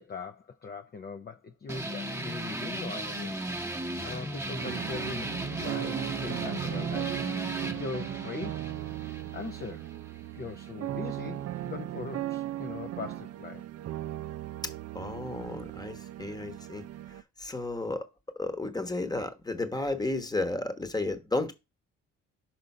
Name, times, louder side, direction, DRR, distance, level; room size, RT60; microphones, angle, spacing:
voice 1, 0.0-3.4 4.0-8.7 9.1-9.9 10.3-13.6, left 5 dB, 35° left, 0.6 m, -41 dB
sound 1, 1.7-10.7, right 1 dB, 10° right, 1.0 m, -36 dB
sound 2, 4.6-17.2, right 14 dB, 55° right, 0.4 m, -37 dB
voice 2, 14.9-16.8 17.4-18.1 18.4-21.5, left 2 dB, 15° left, 1.1 m, -32 dB
5.9 x 3.7 x 5.4 m
cardioid pair, 90°, 30 cm